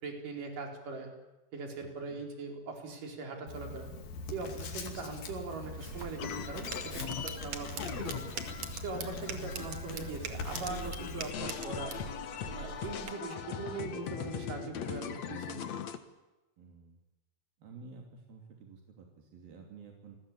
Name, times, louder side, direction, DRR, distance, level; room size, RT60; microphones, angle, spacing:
voice 1, 0.0-1.1 1.5-3.9 4.3-8.2 8.8-12.0 12.6-15.6, right 4 dB, 65° right, 3 dB, 5.8 m, -41 dB
voice 2, 1.8-2.2 16.6-17.0 17.6-20.2, right 4 dB, 80° right, 2 dB, 4.7 m, -52 dB
Writing, 3.5-11.3, left 3 dB, 70° left, 4.4 m, -42 dB
sound 1, 5.9-13.1, right 6 dB, 50° right, 2.9 m, -44 dB
sound 2, 6.2-10.3 10.5-16.0, left 8 dB, 55° left, 2.5 m, -40 dB
28.5 x 20.0 x 8.7 m, 1.1 s
omnidirectional pair, 4.1 m